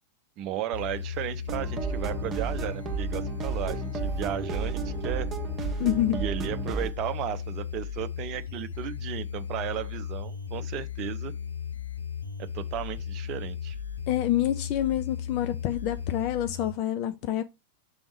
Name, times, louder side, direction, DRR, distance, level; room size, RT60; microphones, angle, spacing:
voice 1, 0.4-5.3 6.1-11.3 12.4-13.8, right 11 dB, 35° right, 0.6 m, -34 dB
sound 1, 0.7-16.7, left 8 dB, 75° left, 0.8 m, -36 dB
sound 2, 1.5-6.9, right 5 dB, 20° right, 1.4 m, -33 dB
voice 2, 5.8-6.2 14.1-17.4, left 12 dB, 45° left, 0.5 m, -27 dB
6.2 x 3.5 x 4.6 m
figure-of-eight pair, 90°, 0 cm